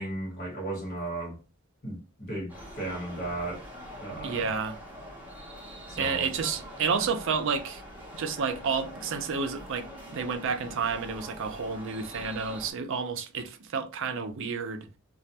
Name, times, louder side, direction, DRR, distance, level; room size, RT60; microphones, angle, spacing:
voice 1, 0.0-1.4 1.8-3.6 4.0-4.5 5.9-6.3, right 2 dB, 45° left, 1.1 m, -35 dB
sound 1, 2.5-12.7, equal, 10° right, 0.7 m, -44 dB
voice 2, 4.2-4.8 6.0-7.8 8.1-14.9, right 5 dB, 65° right, 0.5 m, -30 dB
2.3 x 2.2 x 2.8 m
head